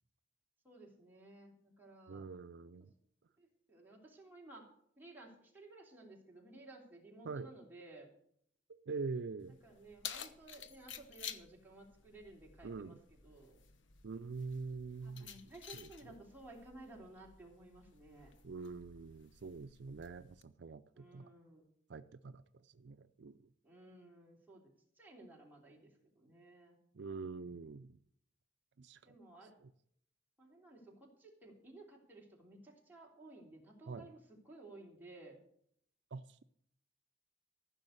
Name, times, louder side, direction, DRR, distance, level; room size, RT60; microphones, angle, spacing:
voice 1, 0.6-2.3 3.4-4.6 5.0-8.1 9.6-12.9 13.2-13.6 15.0-18.3 20.9-21.6 23.6-24.6 25.0-26.8 29.0-29.5 30.4-35.4, right 2 dB, 10° right, -2 dB, 3.2 m, -56 dB
voice 2, 2.1-2.9 7.2-7.5 8.7-9.6 12.6-13.0 14.0-16.2 18.4-21.3 21.9-23.5 26.9-28.0 28.8-29.1 29.4-29.7 33.9-34.1 36.1-36.4, right 4 dB, 65° right, 11 dB, 0.5 m, -45 dB
Keys jangling, 9.4-20.4, left 8 dB, 85° left, 1.0 m, -52 dB
15.0 x 6.3 x 8.0 m, 0.68 s
head